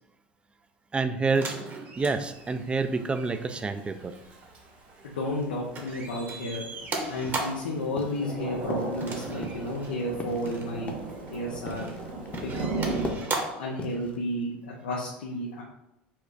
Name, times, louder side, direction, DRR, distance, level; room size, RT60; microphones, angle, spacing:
voice 1, 0.9-1.6 2.0-4.2, right 4 dB, 20° right, 10 dB, 0.4 m, -28 dB
sound 1, 1.4-5.4 5.7-7.8 9.0-10.0 10.4-10.7 11.3-12.0 12.3-13.7 14.9-15.0, right 3 dB, 40° right, 1.1 m, -37 dB
Thunder / Rain, 2.0-13.1, right 3 dB, 75° right, 1.2 m, -38 dB
voice 2, 5.0-6.7 7.1-10.9 11.3-13.3 13.6-15.6, left 1 dB, 85° left, -4 dB, 0.6 m, -32 dB
sound 2, 7.2-7.7 8.0-8.3 8.7-9.1 9.4-12.7 12.9-14.2, left 2 dB, 30° left, 0.8 m, -39 dB
4.4 x 2.3 x 4.6 m, 0.86 s
hypercardioid pair, 80°, 5 cm